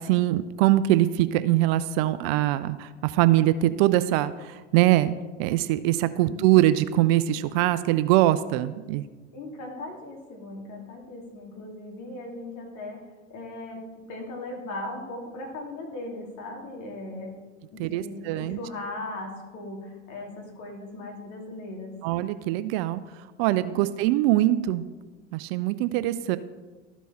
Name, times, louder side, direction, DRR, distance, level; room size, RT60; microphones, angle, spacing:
voice 1, 0.0-5.1 5.4-9.1 17.8-18.6 22.0-23.0 23.4-24.8 25.3-26.4, right 14 dB, 55° right, 14 dB, 0.5 m, -23 dB
voice 2, 6.1-6.5 9.3-13.0 13.3-17.3 17.7-21.9 23.6-23.9, left 2 dB, 50° left, 0 dB, 2.4 m, -38 dB
13.0 x 4.5 x 4.1 m, 1.3 s
hypercardioid pair, 95°, 37 cm